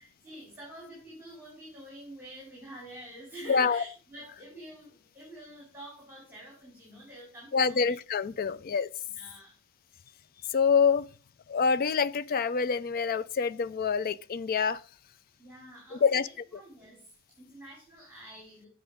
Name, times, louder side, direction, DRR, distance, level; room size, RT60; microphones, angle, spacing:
voice 1, 0.0-7.9 8.4-8.6 9.1-9.5 15.4-16.2 16.5-18.7, right 1 dB, 10° right, 3.0 m, -47 dB
voice 2, 3.5-3.8 7.5-8.9 10.5-11.1 11.5-14.8 15.9-16.3, left 6 dB, 40° left, 0.4 m, -26 dB
7.9 x 6.1 x 5.0 m
head